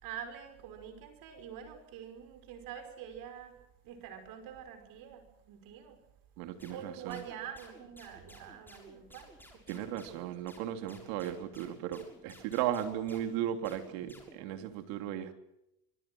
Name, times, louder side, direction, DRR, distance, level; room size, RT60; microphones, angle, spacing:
voice 1, 0.0-3.5 3.8-6.0 6.7-10.3, right 8 dB, 60° right, 8 dB, 5.5 m, -46 dB
voice 2, 6.4-7.2 9.7-15.3, right 11 dB, 75° right, 7 dB, 3.2 m, -36 dB
sound 1, 6.6-14.5, left 1 dB, 5° left, 6.8 m, -56 dB
24.5 x 23.5 x 6.2 m, 0.84 s
supercardioid pair, 120°, 39 cm